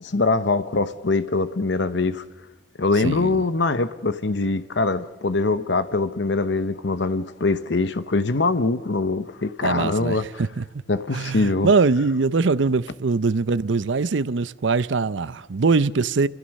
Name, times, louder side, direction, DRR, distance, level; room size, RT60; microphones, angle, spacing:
voice 1, 0.0-2.2 2.8-10.3 10.9-11.7, left 3 dB, 65° left, 0.8 m, -23 dB
voice 2, 3.0-3.4 9.6-10.6 11.1-16.3, right 4 dB, 80° right, 0.6 m, -22 dB
28.0 x 15.5 x 6.4 m
head